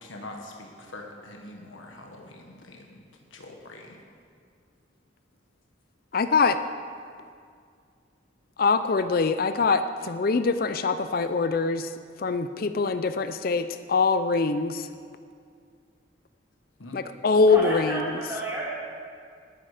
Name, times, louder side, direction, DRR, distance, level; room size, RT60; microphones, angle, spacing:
voice 1, 0.0-3.0 3.3-4.0 16.8-17.0, left 2 dB, 85° left, 2 dB, 1.4 m, -44 dB
voice 2, 6.1-6.6 8.6-11.9 12.2-14.9 16.9-18.2, left 4 dB, 50° left, 10 dB, 0.5 m, -23 dB
voice 3, 17.5-18.6, right 1 dB, 15° right, -8 dB, 4.0 m, -31 dB
19.0 x 9.9 x 5.0 m, 2.2 s
head